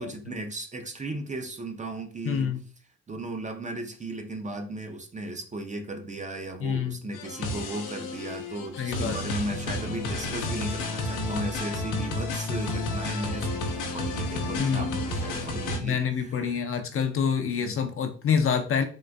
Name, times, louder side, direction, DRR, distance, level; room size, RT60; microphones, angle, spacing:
voice 1, 0.0-2.5 3.1-16.7 17.6-17.8, right 2 dB, 25° right, 5 dB, 0.5 m, -36 dB
voice 2, 2.2-2.6 6.6-7.0 8.8-9.2 14.6-14.9 15.8-18.8, left 7 dB, 45° left, 6 dB, 0.5 m, -27 dB
sound 1, 7.1-15.8, left 2 dB, 80° left, 0.7 m, -31 dB
3.8 x 2.4 x 2.2 m, 0.39 s
cardioid pair, 75°, 31 cm